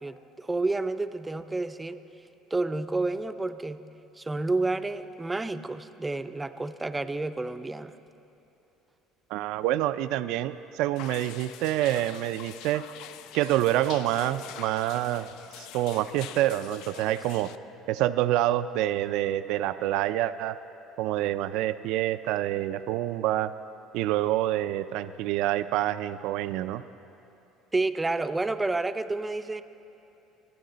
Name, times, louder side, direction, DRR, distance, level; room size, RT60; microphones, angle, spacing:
voice 1, 0.0-2.0 2.5-3.8 4.2-8.0 27.7-29.6, right 2 dB, 10° right, 10 dB, 0.5 m, -30 dB
voice 2, 9.3-12.8 13.3-15.3 15.6-17.5 17.9-20.6 21.0-23.5 23.9-26.8, right 14 dB, 75° right, 12 dB, 0.3 m, -27 dB
sound 1, 11.0-17.6, left 11 dB, 75° left, 0.4 m, -45 dB
26.5 x 10.0 x 3.9 m, 2.8 s
cardioid pair, 130°, 0 cm